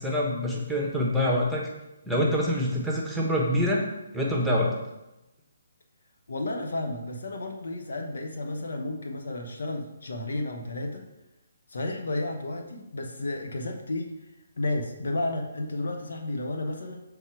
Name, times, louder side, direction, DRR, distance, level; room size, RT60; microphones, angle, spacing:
voice 1, 0.0-1.7 2.1-3.8 4.1-4.7, left 1 dB, ahead, -3 dB, 1.1 m, -25 dB
voice 2, 6.3-11.0 11.7-14.2 14.6-17.0, left 2 dB, 70° left, 3 dB, 1.0 m, -32 dB
7.3 x 3.6 x 4.6 m, 0.97 s
figure-of-eight pair, 140°, 0 cm